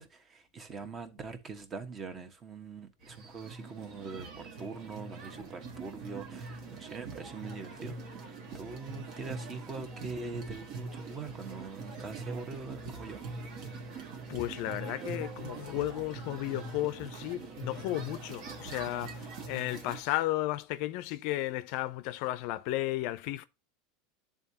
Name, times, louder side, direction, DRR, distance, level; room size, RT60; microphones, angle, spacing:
voice 1, 0.0-13.2, right 4 dB, 30° right, 1.2 m, -43 dB
sound 1, 3.0-20.0, right 3 dB, 55° right, 1.4 m, -44 dB
sound 2, 3.6-19.4, right 7 dB, 75° right, 1.1 m, -53 dB
voice 2, 14.3-23.4, left 16 dB, 60° left, 0.5 m, -34 dB
10.5 x 3.6 x 2.8 m
hypercardioid pair, 100°, 0 cm